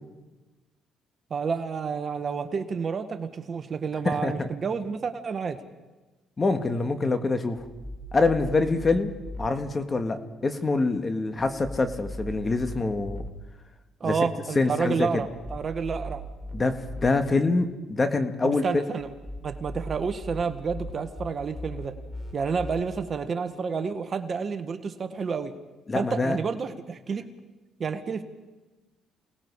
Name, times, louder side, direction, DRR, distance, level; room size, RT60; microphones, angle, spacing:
voice 1, 1.3-5.6 14.0-16.2 18.4-19.1 19.4-21.9 22.3-25.5 25.9-27.3 27.8-28.2, right 5 dB, 40° right, 9 dB, 1.6 m, -30 dB
voice 2, 4.0-4.5 6.4-7.7 8.1-9.1 9.4-13.2 14.0-14.2 14.6-15.3 16.5-18.6 25.9-26.4, left 3 dB, 30° left, 8 dB, 1.9 m, -25 dB
sound 1, 7.6-9.5 11.4-13.3 15.2-17.1 19.0-22.8, equal, 15° left, 4.8 m, -39 dB
28.5 x 19.5 x 4.9 m, 1.2 s
cardioid pair, 90°, 0 cm